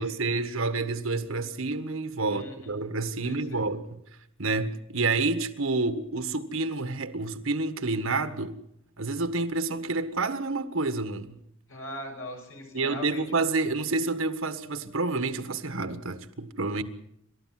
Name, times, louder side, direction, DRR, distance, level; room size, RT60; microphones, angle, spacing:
voice 1, 0.0-4.0 4.4-8.6 9.0-11.4 12.7-16.8, right 3 dB, 85° right, 1.6 m, -29 dB
voice 2, 2.3-2.8 3.2-3.7 11.7-13.2, left 1 dB, 85° left, 7.2 m, -41 dB
29.0 x 13.0 x 7.7 m
head